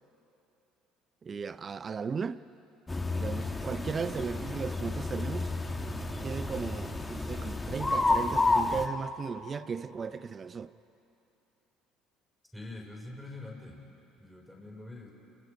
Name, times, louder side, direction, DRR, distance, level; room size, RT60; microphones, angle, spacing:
voice 1, 1.2-2.4 3.1-5.5 6.2-10.7, right 5 dB, 35° right, 0.7 m, -36 dB
sound 1, 2.9-8.9, left 2 dB, 20° left, 2.0 m, -31 dB
voice 2, 12.5-13.8 14.2-15.1, left 2 dB, ahead, 5.5 m, -44 dB
28.5 x 23.5 x 5.3 m
hypercardioid pair, 65°, 0 cm